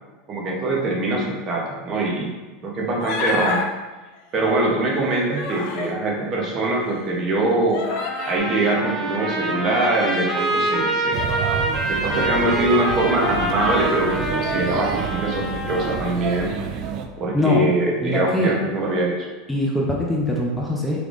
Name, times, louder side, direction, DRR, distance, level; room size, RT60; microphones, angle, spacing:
voice 1, 0.3-2.3 2.6-3.7 4.3-7.8 8.2-11.2 11.9-16.5 17.2-19.3, right 2 dB, 40° right, -2 dB, 0.8 m, -23 dB
Human voice, 3.0-3.7 4.8-5.9 6.7-6.8 7.7-8.4, left 4 dB, 65° left, 0.5 m, -28 dB
Trumpet, 7.9-16.1, right 1 dB, 10° right, 0.9 m, -26 dB
Male speech man speaking / Child speech kid speaking / Chatter, 11.1-17.1, right 7 dB, 55° right, 0.3 m, -29 dB
voice 2, 17.3-17.6 18.0-18.5 19.5-21.0, left 1 dB, 10° left, -2 dB, 0.5 m, -22 dB
3.3 x 3.2 x 2.5 m, 1.2 s
supercardioid pair, 115°, 0 cm